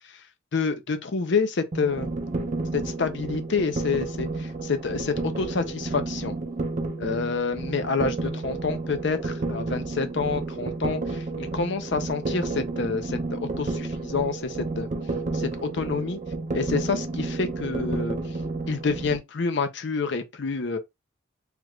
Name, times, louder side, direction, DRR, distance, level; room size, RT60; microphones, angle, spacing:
voice 1, 0.5-2.1 2.7-6.3 7.0-14.9 15.3-16.2 16.5-18.2 18.7-20.8, left 4 dB, 55° left, 0.5 m, -28 dB
sound 1, 1.7-19.2, right 3 dB, 35° right, 0.5 m, -31 dB
3.3 x 2.4 x 3.0 m
head